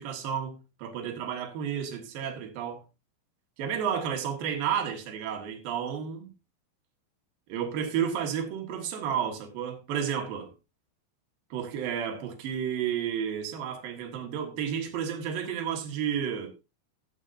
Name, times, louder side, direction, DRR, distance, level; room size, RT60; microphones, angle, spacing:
voice 1, 0.0-2.8 3.6-6.3 7.5-10.5 11.5-16.5, right 8 dB, 70° right, 3.4 m, -31 dB
15.5 x 8.2 x 2.7 m
omnidirectional pair, 4.3 m